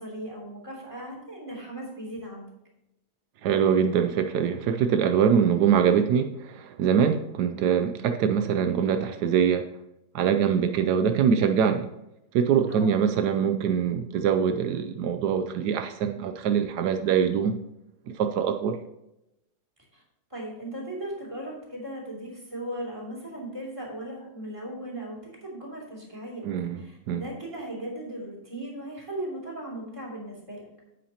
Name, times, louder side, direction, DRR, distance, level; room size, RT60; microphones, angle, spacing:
voice 1, 0.0-2.5 12.7-13.0 19.9-20.0 20.3-26.5 26.8-30.7, right 1 dB, 20° right, -3 dB, 3.2 m, -37 dB
voice 2, 3.4-9.7 10.1-11.9 12.3-17.5 18.1-18.8 26.4-26.8 27.1-27.2, right 7 dB, 85° right, 7 dB, 1.2 m, -23 dB
9.8 x 8.4 x 2.9 m, 0.88 s
omnidirectional pair, 1.7 m